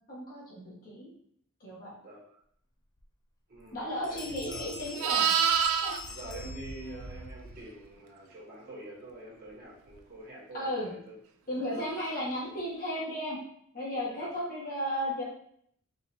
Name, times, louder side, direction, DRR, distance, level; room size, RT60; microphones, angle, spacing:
voice 1, 0.1-1.1 1.6-2.0 3.7-5.3 5.8-5.9 10.5-10.9 11.5-13.4 13.7-15.2, equal, 45° left, -7 dB, 1.5 m, -34 dB
voice 2, 2.0-2.4 3.5-4.8 6.1-11.1 14.2-14.4, right 1 dB, 45° right, -7 dB, 1.4 m, -46 dB
Bell, 3.0-3.1 3.5-3.8 4.0-7.2, left 5 dB, 20° left, 0.4 m, -45 dB
Livestock farm animals working animals, 4.3-7.6 11.9-12.1, right 7 dB, 70° right, 0.4 m, -29 dB
3.9 x 2.8 x 2.7 m, 0.67 s
head